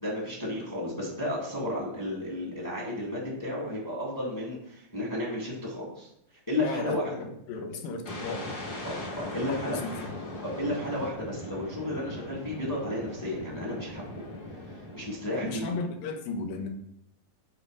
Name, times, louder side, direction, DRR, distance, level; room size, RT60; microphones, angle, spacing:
voice 1, 0.0-6.1 6.5-7.1 8.8-9.8 10.4-14.0 14.6-15.8, left 1 dB, 10° left, -3 dB, 1.0 m, -33 dB
voice 2, 6.6-8.6 9.5-10.1 15.3-16.7, left 3 dB, 85° left, 4 dB, 2.7 m, -35 dB
sound 1, 8.1-15.9, left 1 dB, 45° left, 1.6 m, -39 dB
9.5 x 3.3 x 4.8 m, 0.77 s
omnidirectional pair, 4.1 m